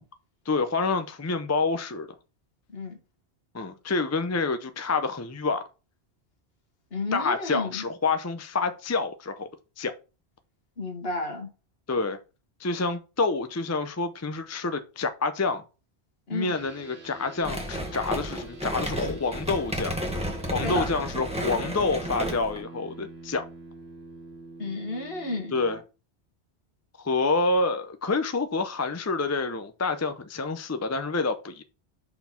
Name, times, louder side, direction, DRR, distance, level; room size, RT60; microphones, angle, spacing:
voice 1, 0.5-2.1 3.5-5.7 7.1-9.5 9.8-9.9 11.9-12.2 12.6-15.6 16.3-19.9 20.5-23.4 25.5-25.8 27.0-31.6, left 3 dB, 20° left, 0.5 m, -28 dB
voice 2, 6.9-7.8 10.8-11.5 16.3-16.5 20.6-20.9 24.6-25.6, left 2 dB, 65° left, 1.8 m, -32 dB
sound 1, 16.4-25.8, right 2 dB, 70° right, 1.7 m, -46 dB
sound 2, 17.4-22.6, equal, 5° right, 1.4 m, -32 dB
5.8 x 4.5 x 5.7 m
omnidirectional pair, 1.1 m